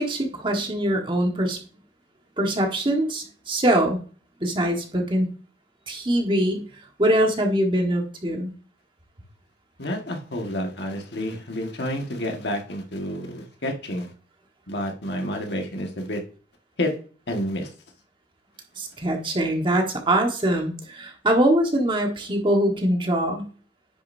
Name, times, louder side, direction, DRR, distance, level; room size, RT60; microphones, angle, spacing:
voice 1, 0.0-1.6 2.4-4.0 4.4-5.3 5.9-6.7 7.0-8.5 18.8-23.5, right 1 dB, 25° right, 2 dB, 1.4 m, -23 dB
voice 2, 9.8-14.1 14.7-16.2 16.8-16.9 17.3-17.7, left 1 dB, 65° left, 3 dB, 1.6 m, -29 dB
9.9 x 6.6 x 2.6 m, 0.40 s
head